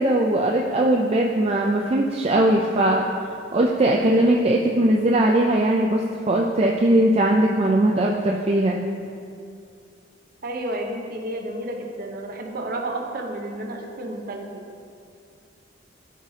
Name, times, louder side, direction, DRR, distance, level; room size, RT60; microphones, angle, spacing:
voice 1, 0.0-3.0 3.5-6.0 6.3-8.8, right 1 dB, 30° right, -1 dB, 0.4 m, -20 dB
voice 2, 10.4-14.6, right 1 dB, 50° right, 1 dB, 0.8 m, -31 dB
13.5 x 4.8 x 2.8 m, 2.3 s
head